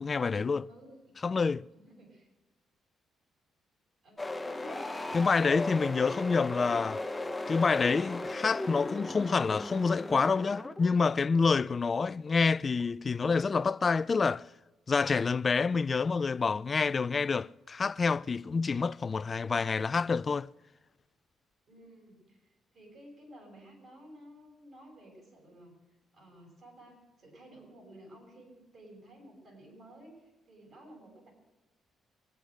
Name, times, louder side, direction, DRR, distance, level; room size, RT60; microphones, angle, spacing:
voice 1, 0.0-0.7 1.2-1.6 5.1-7.0 7.5-14.5 14.9-20.5, left 4 dB, 35° left, 0.4 m, -27 dB
voice 2, 0.7-1.2 1.7-2.3 4.0-4.9 21.7-25.7 26.1-31.3, right 1 dB, 55° right, 6.5 m, -53 dB
sound 1, 4.2-12.9, left 2 dB, 15° left, 1.0 m, -37 dB
24.0 x 8.6 x 6.4 m
cardioid pair, 90°, 0 cm